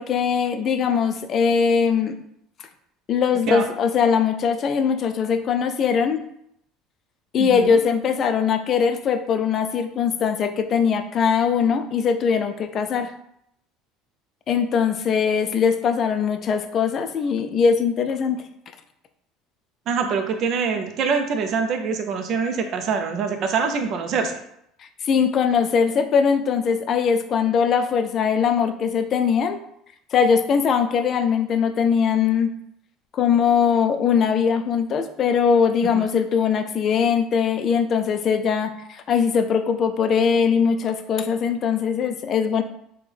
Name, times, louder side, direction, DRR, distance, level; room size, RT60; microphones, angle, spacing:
voice 1, 0.0-2.2 3.1-6.2 7.3-13.1 14.5-18.5 24.8-29.6 30.1-32.5 33.1-42.6, left 6 dB, 40° left, 8 dB, 0.3 m, -21 dB
voice 2, 7.4-7.8 19.9-24.4 35.9-36.1, right 5 dB, 50° right, 5 dB, 0.4 m, -24 dB
3.5 x 2.1 x 3.3 m, 0.74 s
cardioid pair, 130°, 0 cm